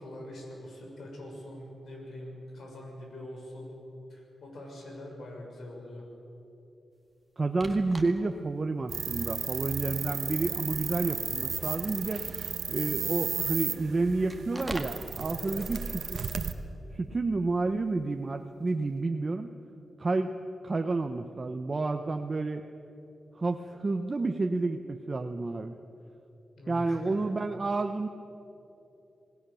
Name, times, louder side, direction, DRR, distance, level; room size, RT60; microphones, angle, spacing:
voice 1, 0.0-3.8 4.1-6.0 15.4-15.6 26.6-27.1, left 1 dB, 70° left, 0 dB, 6.5 m, -43 dB
voice 2, 7.4-12.2 12.7-15.8 16.1-16.3 16.9-19.5 20.0-20.4 20.6-22.6 23.3-25.8 26.7-28.1, right 3 dB, 35° right, 5 dB, 0.9 m, -30 dB
sound 1, 7.5-8.4 8.9-9.0 9.9-10.2 10.5-12.8 14.3-15.0 18.7-19.0, right 1 dB, 10° right, 1.9 m, -43 dB
sound 2, 8.9-16.5, right 6 dB, 70° right, 1.3 m, -34 dB
27.0 x 19.0 x 7.0 m, 2.9 s
wide cardioid pair, 110°, 0 cm